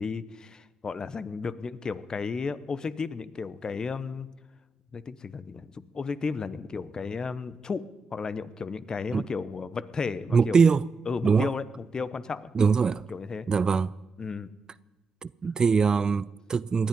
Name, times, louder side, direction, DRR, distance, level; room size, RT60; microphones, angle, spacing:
voice 1, 0.0-4.3 4.9-10.6 11.1-12.5 13.1-13.5 14.2-14.5, left 5 dB, 35° left, 1.0 m, -33 dB
voice 2, 10.3-10.8 11.2-11.5 12.5-13.0 13.5-13.9 15.2-16.9, right 5 dB, 35° right, 0.4 m, -22 dB
19.0 x 12.5 x 5.3 m
hypercardioid pair, 60°, 2 cm